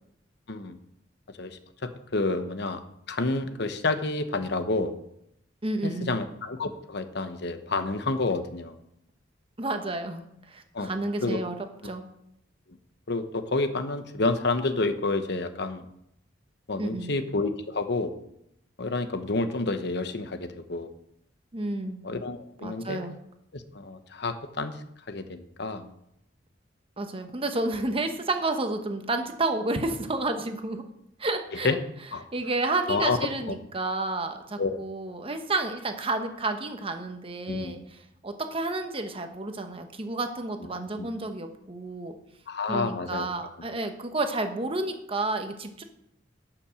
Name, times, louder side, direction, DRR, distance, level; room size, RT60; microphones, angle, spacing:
voice 1, 2.1-2.8 3.1-4.9 5.8-8.7 10.7-10.9 11.2-11.4 13.1-15.8 16.7-18.1 18.8-20.9 22.0-23.0 23.5-24.8 25.1-25.9 31.6-31.8 32.1-32.2 32.9-33.2 34.6-34.8 37.5-37.8 41.0-41.1 42.5-43.3, left 3 dB, 65° left, 9 dB, 1.0 m, -29 dB
voice 2, 5.6-6.2 9.6-11.6 11.8-12.1 16.8-17.1 21.5-22.0 22.6-23.1 27.0-30.8 31.2-31.8 32.3-42.1 42.7-45.8, right 2 dB, 30° right, 6 dB, 1.1 m, -31 dB
11.5 x 6.0 x 6.4 m, 0.78 s
head